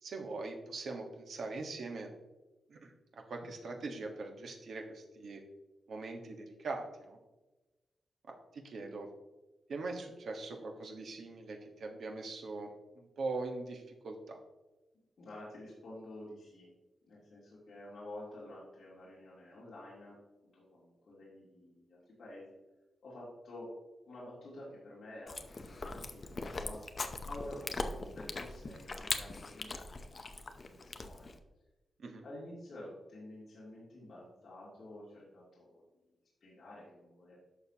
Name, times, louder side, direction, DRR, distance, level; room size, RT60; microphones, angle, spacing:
voice 1, 0.0-2.1 2.7-5.4 5.9-7.2 8.3-9.1 9.7-14.4 32.0-32.2, right 3 dB, 65° right, 3 dB, 1.3 m, -42 dB
voice 2, 15.2-16.7 17.1-20.1 20.5-22.5 23.0-23.7 24.1-26.8 27.2-31.3 32.2-35.8 36.4-37.4, left 1 dB, 55° left, -8 dB, 2.8 m, -50 dB
Chewing mastication, 25.3-31.4, left 3 dB, 35° left, 0.7 m, -40 dB
11.0 x 6.7 x 2.9 m, 1.1 s
wide cardioid pair, 145°, 0 cm